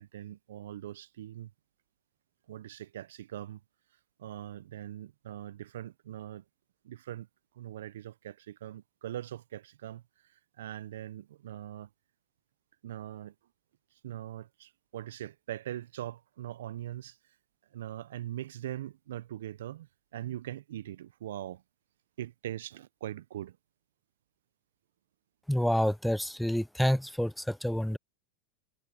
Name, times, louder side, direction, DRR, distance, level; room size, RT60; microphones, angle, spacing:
voice 1, 0.0-1.5 2.5-3.6 4.2-6.4 6.8-7.3 7.5-10.0 10.6-11.9 12.8-13.3 14.0-17.2 17.7-21.6 22.2-23.6, right 12 dB, 80° right, 0.4 m, -41 dB
voice 2, 25.5-28.0, equal, ahead, 0.5 m, -28 dB
hypercardioid pair, 120°, 0 cm